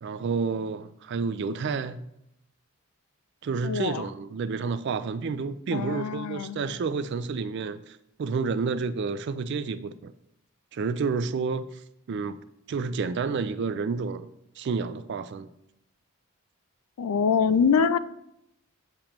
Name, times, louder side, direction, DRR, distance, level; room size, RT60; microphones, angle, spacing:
voice 1, 0.0-2.0 3.4-10.1 10.7-11.7 12.1-12.4 12.7-14.3 14.6-15.5, right 4 dB, 50° right, 0.3 m, -30 dB
voice 2, 3.6-4.1 5.7-6.7 17.0-18.0, left 6 dB, 85° left, 0.4 m, -24 dB
7.4 x 3.0 x 5.0 m
head